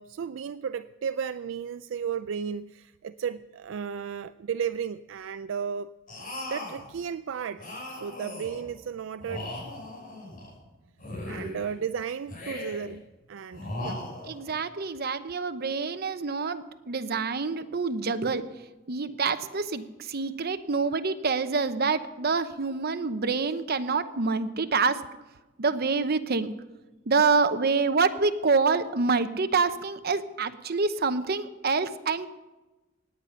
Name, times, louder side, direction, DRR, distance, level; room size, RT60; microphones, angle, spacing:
voice 1, 0.0-5.9 6.5-7.6 7.9-9.5 11.3-13.0 13.3-14.1, right 7 dB, 75° right, 0.4 m, -34 dB
sound 1, 6.1-6.9 7.6-8.7 9.2-10.6 11.0-11.8 12.3-13.0 13.5-14.5, left 1 dB, 45° left, 6.2 m, -38 dB
voice 2, 14.3-18.4 18.9-25.0 25.6-26.5 27.1-32.3, right 4 dB, 55° right, 0.8 m, -26 dB
17.5 x 9.8 x 5.8 m
head